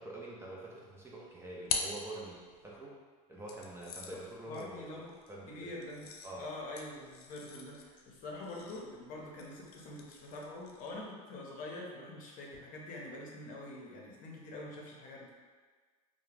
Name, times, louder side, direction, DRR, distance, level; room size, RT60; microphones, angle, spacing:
voice 1, 0.0-3.0 3.3-5.7 6.2-6.5, right 2 dB, 15° right, -5 dB, 0.4 m, -46 dB
sound 1, 1.0-2.8 3.5-11.1, left 5 dB, 80° left, 0.4 m, -44 dB
voice 2, 4.5-5.1 5.5-6.1 6.4-15.3, left 2 dB, 45° left, -2 dB, 0.7 m, -45 dB
2.3 x 2.1 x 3.1 m, 1.5 s
hypercardioid pair, 100°, 19 cm